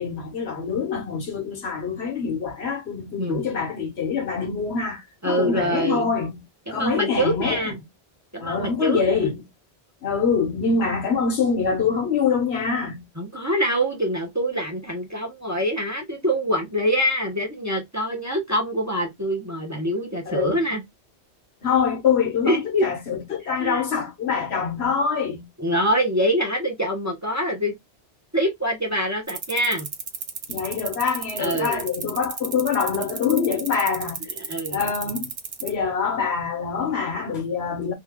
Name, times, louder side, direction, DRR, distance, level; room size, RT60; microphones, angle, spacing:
voice 1, 0.0-6.3 6.7-7.6 8.4-9.4 10.0-13.0 20.3-20.5 21.6-25.5 30.5-34.2 34.7-35.3 35.6-37.9, left 6 dB, 75° left, 1.3 m, -25 dB
voice 2, 5.2-6.2 6.7-7.8 8.3-9.2 13.2-20.8 22.4-22.9 23.6-23.8 25.6-27.7 28.3-29.9 31.4-31.8 33.4-33.6 34.5-34.9, equal, 15° right, 0.9 m, -25 dB
sound 1, 29.3-35.7, right 6 dB, 50° right, 0.4 m, -32 dB
2.8 x 2.3 x 3.5 m
omnidirectional pair, 1.1 m